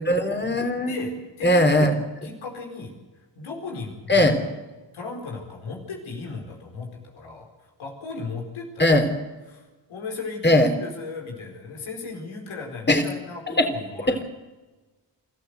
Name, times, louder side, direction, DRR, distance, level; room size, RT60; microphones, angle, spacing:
voice 1, 0.0-1.1 1.4-1.9 4.1-4.4 8.8-9.1 10.4-10.7 12.9-13.0 13.5-13.7 14.1-14.2, left 1 dB, 20° left, 5 dB, 3.4 m, -19 dB
voice 2, 0.8-2.9 3.3-4.5 4.9-6.9 7.1-7.5 7.8-9.1 9.5-9.6 9.9-14.2, left 4 dB, 90° left, 1 dB, 4.6 m, -36 dB
23.5 x 14.0 x 8.1 m, 1.2 s
cardioid pair, 45°, 47 cm